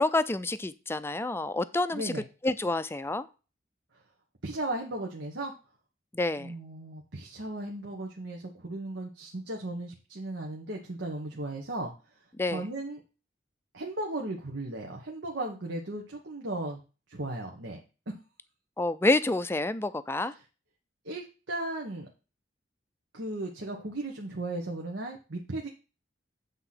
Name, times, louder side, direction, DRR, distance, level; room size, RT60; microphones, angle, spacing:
voice 1, 0.0-2.1 2.4-3.3 6.1-6.5 12.4-12.6 18.8-20.3, left 2 dB, 15° left, 13 dB, 0.4 m, -28 dB
voice 2, 1.9-2.2 4.4-5.5 6.4-11.9 12.4-13.0 13.7-16.8 17.1-17.8 21.0-22.1 23.1-25.7, right 2 dB, 80° right, 0 dB, 1.2 m, -36 dB
8.1 x 3.8 x 5.8 m, 0.33 s
head